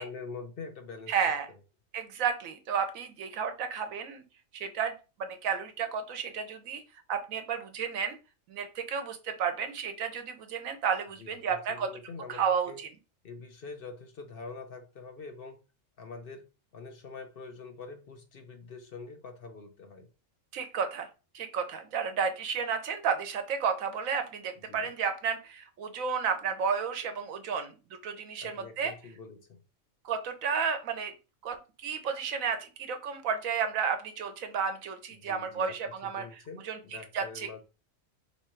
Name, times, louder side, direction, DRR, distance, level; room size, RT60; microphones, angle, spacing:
voice 1, 0.0-1.1 11.2-12.8 13.2-15.6 16.0-16.5 16.7-20.1 24.7-24.9 28.4-29.6 35.2-35.8 36.0-37.6, left 4 dB, 55° left, 0.7 m, -45 dB
voice 2, 1.1-1.5 1.9-4.2 4.5-4.9 5.2-6.8 7.1-8.2 8.5-11.9 12.3-12.9 20.5-21.1 21.3-27.8 28.0-28.9 30.0-31.1 31.4-36.8 37.1-37.6, right 6 dB, 85° right, 1.2 m, -32 dB
3.6 x 3.0 x 4.4 m
omnidirectional pair, 1.4 m